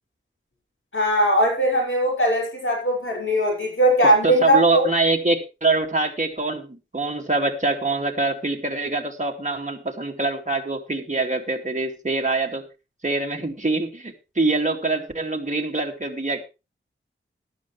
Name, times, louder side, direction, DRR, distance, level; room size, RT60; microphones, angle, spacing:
voice 1, 0.9-4.8, right 1 dB, 70° left, 6.1 m, -20 dB
voice 2, 4.2-12.6 13.0-16.4, right 3 dB, 35° right, 2.4 m, -24 dB
13.5 x 12.5 x 3.3 m
wide cardioid pair, 65°, 21 cm